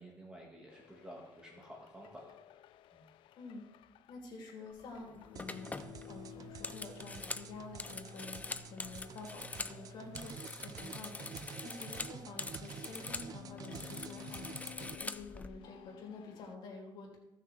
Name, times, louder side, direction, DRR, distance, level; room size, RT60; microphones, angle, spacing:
voice 1, 0.0-2.3 2.9-3.1, right 1 dB, 10° right, -2 dB, 1.9 m, -52 dB
sound 1, 0.7-16.6, left 14 dB, 85° left, 0.4 m, -56 dB
voice 2, 4.1-17.2, left 3 dB, 65° left, 0 dB, 2.8 m, -49 dB
sound 2, 4.8-5.0 5.4-9.8 10.1-13.3 13.6-15.5, left 3 dB, 20° left, 0.5 m, -44 dB
sound 3, 5.4-15.0, right 7 dB, 50° right, 0.5 m, -49 dB
16.0 x 6.3 x 3.4 m, 0.93 s
cardioid pair, 120°, 8 cm